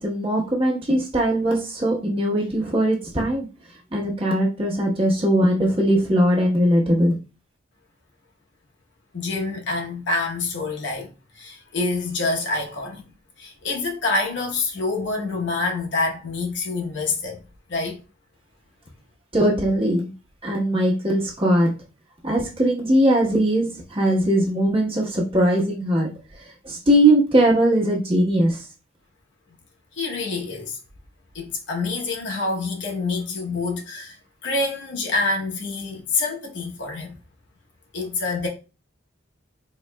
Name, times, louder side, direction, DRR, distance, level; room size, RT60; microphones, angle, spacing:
voice 1, 0.0-3.4 3.9-7.2 19.3-20.1 20.4-21.7 22.2-26.1 26.6-28.6, right 1 dB, 30° right, 1.1 m, -20 dB
voice 2, 9.1-13.0 13.4-17.4 17.7-18.0 29.9-30.8 31.3-34.2 34.4-37.2 37.9-38.5, left 3 dB, 65° left, 0.9 m, -26 dB
4.1 x 3.1 x 2.2 m
head